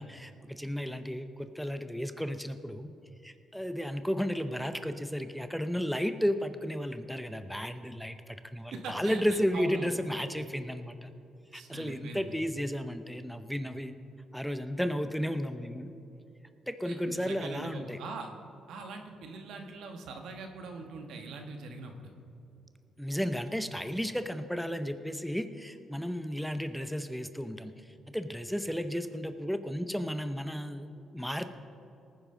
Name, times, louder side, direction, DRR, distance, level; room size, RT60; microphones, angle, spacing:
voice 1, 0.0-2.9 3.2-11.1 11.5-13.9 14.3-15.9 16.7-18.0 23.0-30.9 31.1-31.5, equal, ahead, 10 dB, 0.6 m, -33 dB
voice 2, 8.7-9.9 11.5-12.3 16.8-18.3 18.7-22.1, right 3 dB, 80° right, 4 dB, 1.3 m, -42 dB
18.5 x 9.9 x 3.8 m, 2.7 s
cardioid pair, 90°, 0 cm